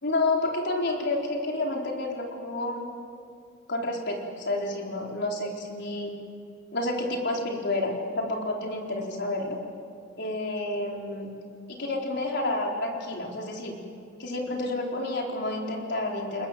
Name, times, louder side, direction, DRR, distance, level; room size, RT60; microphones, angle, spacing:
voice 1, 0.0-2.9 3.7-6.1 6.7-9.6 10.2-11.3 11.7-13.8 14.2-16.5, left 2 dB, 60° left, 0 dB, 4.4 m, -29 dB
29.5 x 20.5 x 7.7 m, 2.3 s
head